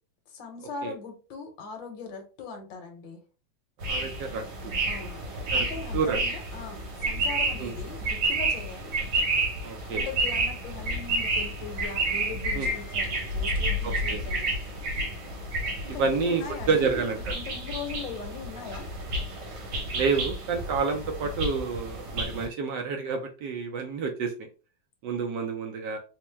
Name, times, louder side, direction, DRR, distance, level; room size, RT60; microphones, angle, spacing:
voice 1, 0.3-3.2 4.9-5.2 5.5-8.9 9.9-14.6 15.8-18.9, left 4 dB, 70° left, 4 dB, 1.5 m, -40 dB
sound 1, 3.8-22.5, right 2 dB, 90° right, 2.0 m, -30 dB
voice 2, 3.9-4.7 5.5-5.7 5.9-6.2 7.6-7.7 9.6-10.0 12.5-12.7 13.8-14.2 15.9-17.3 19.9-24.3 25.0-26.0, right 5 dB, 75° right, 3 dB, 1.1 m, -29 dB
4.3 x 2.1 x 3.3 m, 0.35 s
omnidirectional pair, 2.2 m